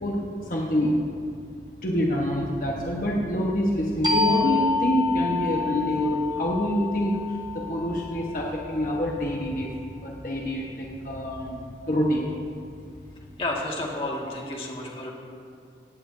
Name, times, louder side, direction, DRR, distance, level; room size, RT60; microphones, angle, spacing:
voice 1, 0.0-1.0 1.8-9.7 10.0-12.3, equal, 50° left, -2 dB, 1.3 m, -26 dB
sound 1, 4.0-9.3, left 4 dB, 20° right, 1.1 m, -29 dB
voice 2, 13.4-15.1, left 2 dB, 30° left, -3 dB, 2.0 m, -31 dB
18.0 x 16.0 x 2.8 m, 2.3 s
head